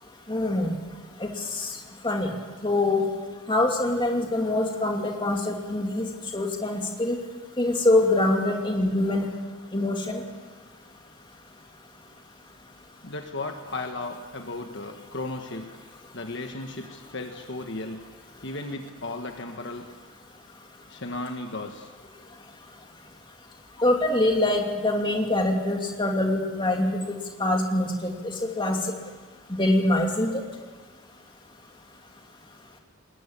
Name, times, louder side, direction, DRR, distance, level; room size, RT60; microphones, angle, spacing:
voice 1, 0.3-0.7 1.2-1.3 1.6-1.7 2.0-2.3 2.6-3.0 3.5-6.1 6.3-7.2 7.6-9.3 9.7-10.2 23.8-27.9 28.2-28.8 29.5-30.3, left 1 dB, 20° left, 2 dB, 2.6 m, -24 dB
voice 2, 13.0-15.7 16.1-18.0 18.4-19.9 20.9-21.9, left 2 dB, 55° left, 4 dB, 1.6 m, -35 dB
21.5 x 20.5 x 8.8 m, 1.4 s
head